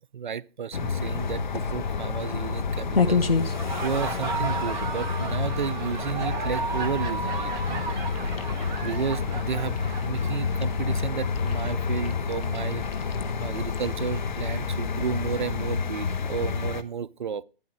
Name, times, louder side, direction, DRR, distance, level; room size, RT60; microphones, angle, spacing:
voice 1, 0.1-3.3 3.8-7.8 8.8-12.8 13.4-17.4, right 7 dB, 55° right, 0.6 m, -32 dB
sound 1, 0.7-16.8, left 5 dB, 50° left, 1.1 m, -29 dB
sound 2, 1.2-15.7, left 4 dB, 80° left, 1.5 m, -34 dB
Laughter, 3.4-11.0, right 4 dB, 10° right, 0.9 m, -34 dB
12.5 x 11.5 x 3.7 m
figure-of-eight pair, 140°, 29 cm